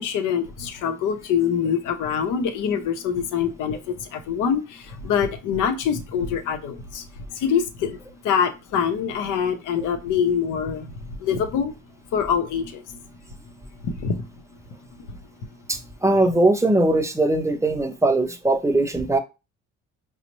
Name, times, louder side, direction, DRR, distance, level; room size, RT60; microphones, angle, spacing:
voice 1, 0.0-10.9 11.2-11.7 12.1-13.0 13.8-14.3 15.1-15.2, left 7 dB, 90° left, 0.7 m, -25 dB
voice 2, 15.7-19.2, right 2 dB, 10° right, 0.5 m, -20 dB
5.1 x 2.0 x 2.9 m
cardioid pair, 90°, 30 cm